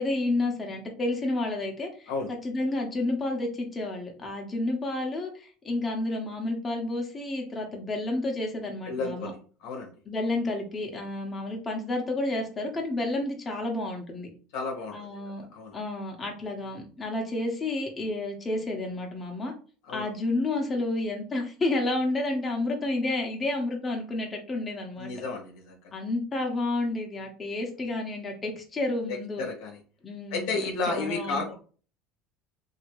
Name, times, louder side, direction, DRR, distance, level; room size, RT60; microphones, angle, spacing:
voice 1, 0.0-9.3 10.1-14.3 14.9-15.4 15.7-19.5 19.9-25.1 25.9-29.4 30.0-30.6 30.9-31.5, left 2 dB, 25° left, 1 dB, 1.0 m, -30 dB
voice 2, 8.9-9.4 9.6-9.9 14.5-15.7 19.9-20.1 25.0-25.8 29.1-29.8 30.3-31.5, left 3 dB, 75° left, 2 dB, 1.0 m, -32 dB
2.9 x 2.8 x 3.0 m, 0.40 s
supercardioid pair, 95°, 0 cm